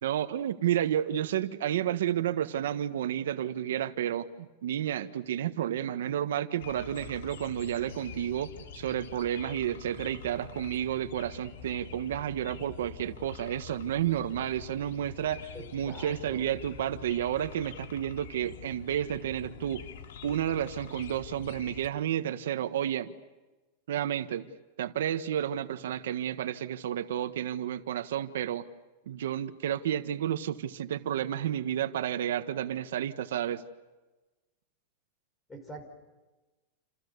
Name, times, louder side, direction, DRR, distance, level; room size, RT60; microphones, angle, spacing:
voice 1, 0.0-19.9 20.2-23.1 23.9-24.5 24.8-28.7 29.1-33.6, right 10 dB, 85° right, 10 dB, 1.4 m, -31 dB
sound 1, 6.6-21.9, left 7 dB, 75° left, 2.7 m, -46 dB
voice 2, 15.5-16.4 35.5-35.8, right 1 dB, 10° left, 5 dB, 5.1 m, -44 dB
29.5 x 28.5 x 6.9 m, 1.2 s
supercardioid pair, 175°, 0 cm